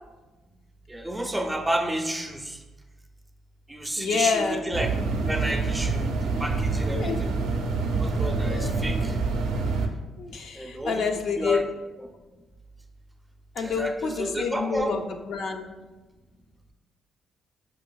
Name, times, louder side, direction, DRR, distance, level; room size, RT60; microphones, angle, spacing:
voice 1, 0.9-2.6 3.7-7.3 8.0-9.2 10.6-11.1 11.4-11.6 12.0-12.1 13.6-14.9, right 1 dB, 10° right, 3 dB, 0.4 m, -31 dB
voice 2, 4.0-4.6 6.9-7.2 8.4-8.8 10.2-11.6 13.6-15.7, left 5 dB, 70° left, 3 dB, 0.3 m, -28 dB
sound 1, 4.7-9.9, right 3 dB, 85° right, 0.3 m, -26 dB
4.7 x 2.6 x 2.2 m, 1.2 s
cardioid pair, 90°, 0 cm